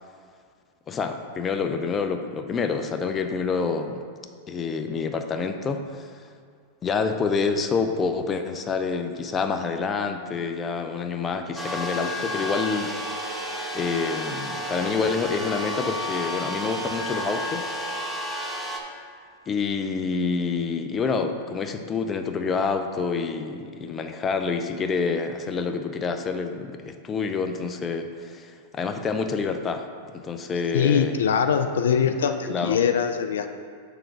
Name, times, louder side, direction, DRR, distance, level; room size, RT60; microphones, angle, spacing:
voice 1, 0.9-4.0 4.5-6.1 6.8-12.9 13.7-17.7 18.7-18.8 19.5-29.9 30.1-31.2 32.4-32.8, left 5 dB, 25° left, 6 dB, 0.6 m, -27 dB
sound 1, 11.6-18.8, equal, 5° right, 1.1 m, -31 dB
voice 2, 30.7-33.5, left 7 dB, 75° left, 8 dB, 0.4 m, -22 dB
6.7 x 3.8 x 6.2 m, 2.1 s
hypercardioid pair, 105°, 0 cm